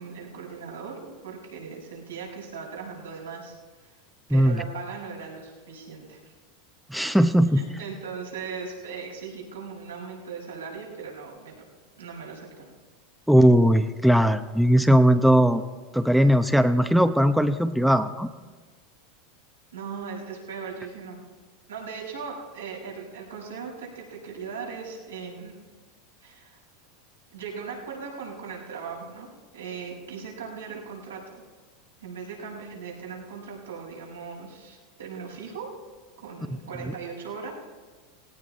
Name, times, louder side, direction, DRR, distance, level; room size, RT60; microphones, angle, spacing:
voice 1, 0.0-3.6 4.3-6.3 7.5-11.6 12.0-12.7 19.7-21.2 21.7-25.6 26.2-26.6 27.3-31.4 32.0-35.8 36.2-37.5, right 5 dB, 90° right, -3 dB, 5.5 m, -38 dB
voice 2, 6.9-7.6 13.3-15.6 15.9-18.3, equal, ahead, 8 dB, 0.8 m, -19 dB
18.0 x 17.5 x 4.3 m, 1.4 s
hypercardioid pair, 90°, 0 cm